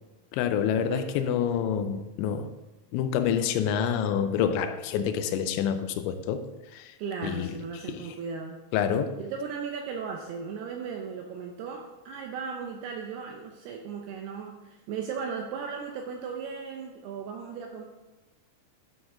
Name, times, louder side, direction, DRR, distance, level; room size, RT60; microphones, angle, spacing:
voice 1, 0.3-2.5 2.9-6.4 6.7-6.9 7.2-7.6 7.9-8.1 8.7-9.1, left 8 dB, 85° left, 2.9 m, -27 dB
voice 2, 7.0-8.6 9.2-17.8, right 6 dB, 80° right, 2.3 m, -36 dB
11.5 x 5.7 x 3.8 m
omnidirectional pair, 5.3 m